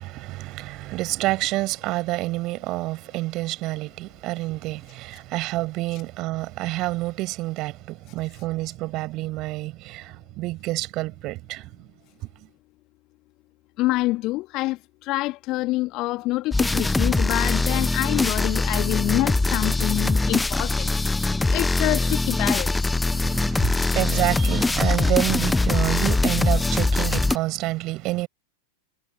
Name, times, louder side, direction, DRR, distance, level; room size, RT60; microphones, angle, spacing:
voice 1, 0.0-11.9 23.1-28.3, right 19 dB, 40° right, 6.0 m, -28 dB
voice 2, 13.8-14.8 15.0-20.9 21.5-22.7, left 19 dB, 40° left, 2.0 m, -26 dB
sound 1, 16.5-27.4, left 2 dB, 10° left, 0.5 m, -22 dB
figure-of-eight pair, 90°, 0 cm